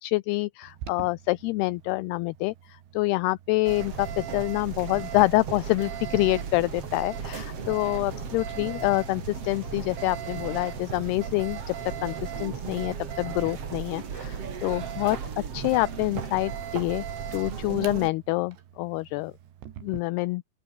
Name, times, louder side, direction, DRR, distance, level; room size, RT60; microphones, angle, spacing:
voice 1, 0.0-11.8 12.0-15.2 15.5-17.1 17.3-19.3 19.8-20.4, left 21 dB, 80° left, 2.4 m, -27 dB
Alarm, 0.6-20.0, right 11 dB, 80° right, 4.5 m, -43 dB
sound 1, 3.7-18.1, right 6 dB, 40° right, 2.9 m, -36 dB
sound 2, 6.8-14.5, left 5 dB, 35° left, 3.9 m, -49 dB
open air
omnidirectional pair, 5.1 m